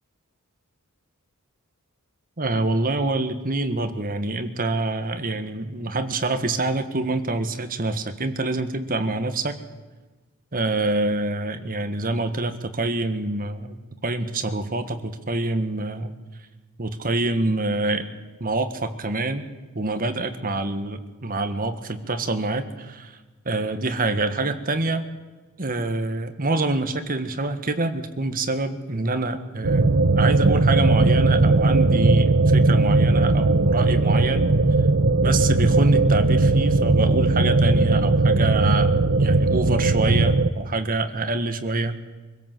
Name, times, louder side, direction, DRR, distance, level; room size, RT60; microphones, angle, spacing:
voice 1, 2.4-9.6 10.5-16.1 16.8-18.1 18.4-19.5 19.7-23.2 23.4-25.1 25.6-34.5 35.2-42.1, right 2 dB, 40° right, 8 dB, 1.5 m, -26 dB
sound 1, 29.6-40.5, right 2 dB, 60° right, 0.9 m, -18 dB
24.5 x 16.5 x 7.7 m, 1.3 s
head